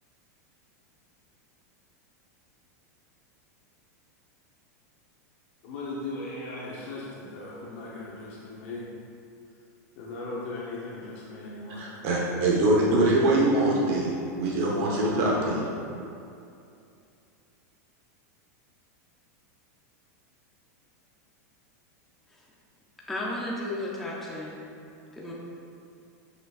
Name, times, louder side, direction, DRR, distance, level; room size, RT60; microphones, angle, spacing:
voice 1, 5.6-8.9 10.0-11.9, left 2 dB, 45° left, -4 dB, 0.9 m, -38 dB
voice 2, 11.8-15.6, right 1 dB, 40° right, -4 dB, 1.1 m, -23 dB
voice 3, 23.1-24.6 25.1-25.3, left 1 dB, 5° left, -5 dB, 0.5 m, -33 dB
8.0 x 6.5 x 2.4 m, 2.6 s
supercardioid pair, 170°, 9 cm